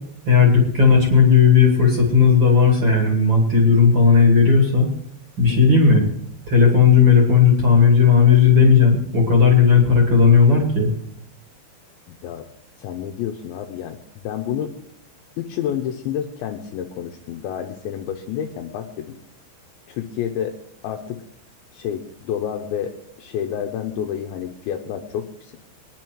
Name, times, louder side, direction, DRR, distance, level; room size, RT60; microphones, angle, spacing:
voice 1, 0.2-4.9 5.4-6.1 6.5-10.9, left 5 dB, 35° right, 0 dB, 1.8 m, -14 dB
voice 2, 5.5-5.8 12.1-12.5 12.8-14.0 14.2-14.7 15.4-19.2 19.9-20.6 20.8-21.2 21.7-25.6, left 9 dB, 75° left, 3 dB, 2.8 m, -29 dB
22.0 x 10.5 x 4.6 m, 0.80 s
omnidirectional pair, 6.0 m